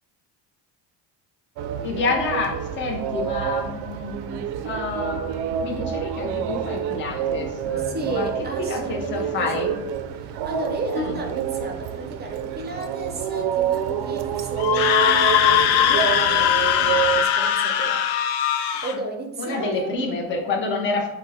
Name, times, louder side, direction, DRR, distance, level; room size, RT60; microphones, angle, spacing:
sound 1, 1.6-17.2, right 8 dB, 70° right, 0.5 m, -28 dB
voice 1, 1.8-8.3 8.6-9.7 10.9-11.2 19.4-21.1, left 3 dB, 30° left, 0 dB, 0.7 m, -28 dB
voice 2, 7.8-9.7 10.2-18.0 18.8-19.9, right 2 dB, 25° right, 3 dB, 0.5 m, -33 dB
Screaming, 14.6-19.0, left 9 dB, 65° left, 0.5 m, -20 dB
6.0 x 2.2 x 4.1 m, 0.95 s
cardioid pair, 175°, 41 cm